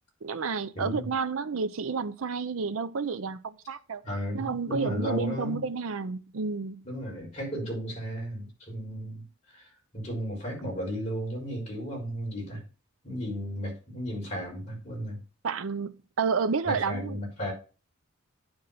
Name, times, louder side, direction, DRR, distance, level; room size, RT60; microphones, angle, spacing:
voice 1, 0.2-4.0 4.3-6.9 15.4-17.2, right 5 dB, 75° right, 0.5 m, -30 dB
voice 2, 0.7-1.1 4.0-5.6 6.8-9.2 9.5-12.6 13.0-15.2 16.6-17.5, equal, 35° left, 4.7 m, -34 dB
9.6 x 3.8 x 5.7 m
head